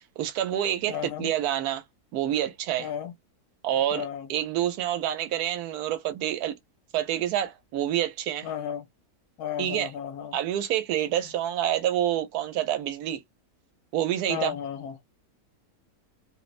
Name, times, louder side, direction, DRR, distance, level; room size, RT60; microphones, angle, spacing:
voice 1, 0.2-1.8 2.1-2.9 3.6-4.0 4.3-6.6 6.9-8.5 9.6-9.9 10.3-13.2 13.9-14.5, right 11 dB, 90° right, 1.1 m, -27 dB
voice 2, 0.9-1.3 2.8-3.1 3.9-4.3 8.4-8.9 9.4-10.4 14.3-15.0, left 8 dB, 75° left, 1.1 m, -33 dB
2.8 x 2.0 x 2.4 m
omnidirectional pair, 1.6 m